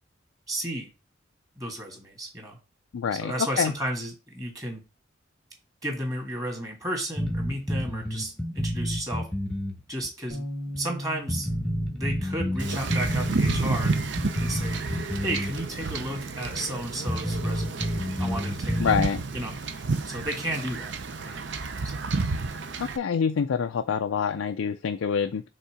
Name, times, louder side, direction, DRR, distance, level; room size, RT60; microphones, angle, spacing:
voice 1, 0.5-0.9 1.6-2.6 3.2-4.8 5.8-9.3 9.9-10.4 10.8-11.5 11.8-13.9 14.4-14.8 15.2-17.9 18.2-18.9 19.3-19.6 20.0-20.9 21.2-21.4 21.9-22.0, right 1 dB, 20° right, 1 dB, 1.8 m, -33 dB
voice 2, 2.9-3.7 18.8-19.2 22.8-25.4, left 6 dB, 85° left, 8 dB, 0.4 m, -26 dB
sound 1, 7.2-9.8 10.0-10.1 10.7-10.8 11.3-15.5 15.8-15.9 16.5-16.6 17.1-19.1, equal, 5° left, 0.9 m, -29 dB
Bass guitar, 10.3-16.5, equal, 75° right, 2.9 m, -41 dB
Wind / Ocean / Boat Water vehicle, 12.6-23.0, right 4 dB, 60° right, 0.6 m, -31 dB
5.5 x 3.6 x 4.9 m, 0.30 s
head